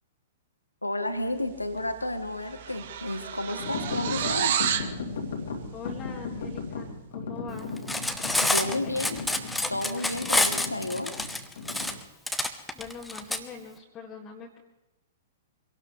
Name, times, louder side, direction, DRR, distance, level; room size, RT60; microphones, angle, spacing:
voice 1, 0.8-4.6 8.4-9.2 9.7-11.1, left 1 dB, 85° left, 8 dB, 1.3 m, -31 dB
sound 1, 1.8-2.0 2.2-4.9, right 9 dB, 50° right, 1.0 m, -30 dB
sound 2, 3.6-12.0, left 4 dB, 60° left, 2.4 m, -36 dB
voice 2, 5.7-7.9 8.8-8.9 12.7-14.6, left 5 dB, 20° left, -3 dB, 1.9 m, -43 dB
Cutlery silverware, 7.8-13.4, left 2 dB, 5° left, 1.0 m, -27 dB
25.0 x 18.0 x 3.3 m, 0.98 s
figure-of-eight pair, 110°, 0 cm